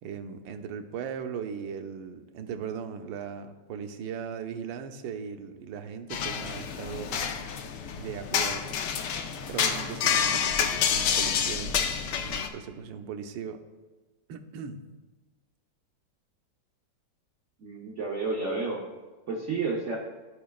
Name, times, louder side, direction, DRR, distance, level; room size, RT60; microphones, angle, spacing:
voice 1, 0.0-7.4 8.0-8.8 9.2-11.8 12.0-13.6 14.3-14.8, right 7 dB, 90° right, 7 dB, 1.4 m, -38 dB
sound 1, 6.1-12.5, left 7 dB, 70° left, 1.2 m, -28 dB
voice 2, 17.6-18.8 19.3-20.0, right 3 dB, 50° right, -2 dB, 0.9 m, -30 dB
15.0 x 5.0 x 2.3 m, 1.2 s
omnidirectional pair, 2.0 m